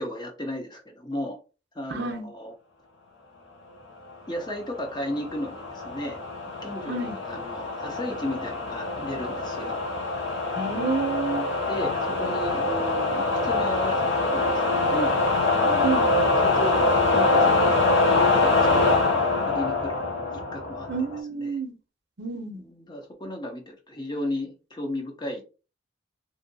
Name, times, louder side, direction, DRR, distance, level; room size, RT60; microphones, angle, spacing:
voice 1, 0.0-1.4 1.7-2.5 4.3-6.2 6.6-9.8 11.7-15.2 15.6-16.8 17.1-20.0 20.3-20.9 21.3-21.6 22.5-25.4, left 1 dB, 25° left, 0.6 m, -34 dB
voice 2, 1.9-2.3 6.9-7.2 10.6-11.5 15.8-16.1 20.9-21.8 22.2-22.7, right 4 dB, 60° right, 0.6 m, -29 dB
sound 1, 4.7-21.2, left 3 dB, 70° left, 0.8 m, -24 dB
2.6 x 2.6 x 2.6 m
head